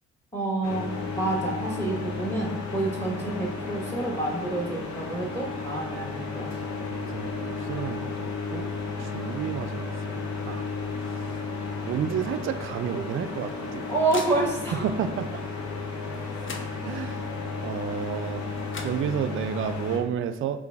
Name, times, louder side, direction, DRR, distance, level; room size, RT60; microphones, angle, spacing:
voice 1, 0.3-0.9 1.1-6.5 13.9-14.8, right 2 dB, 10° left, -1 dB, 1.2 m, -28 dB
sound 1, 0.6-20.0, left 4 dB, 70° left, 0.9 m, -33 dB
voice 2, 6.9-8.7 9.0-10.7 11.8-13.9 14.7-15.4 16.8-17.3 17.6-18.4 18.8-20.6, right 8 dB, 45° right, 9 dB, 0.4 m, -31 dB
sound 2, 13.3-14.9 16.1-16.2 16.4-17.3 18.4-18.5 18.7-19.6, left 3 dB, 40° left, 0.7 m, -41 dB
5.6 x 2.6 x 3.5 m, 0.96 s
hypercardioid pair, 40°, 30 cm